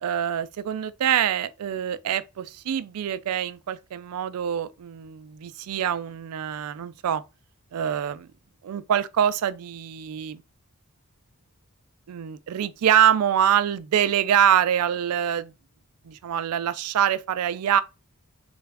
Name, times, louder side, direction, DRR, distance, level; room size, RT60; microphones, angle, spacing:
voice 1, 0.0-7.2 7.7-8.3 8.6-10.4 12.1-15.5 16.1-17.8, right 9 dB, 80° right, 0.3 m, -25 dB
3.3 x 2.3 x 3.2 m
head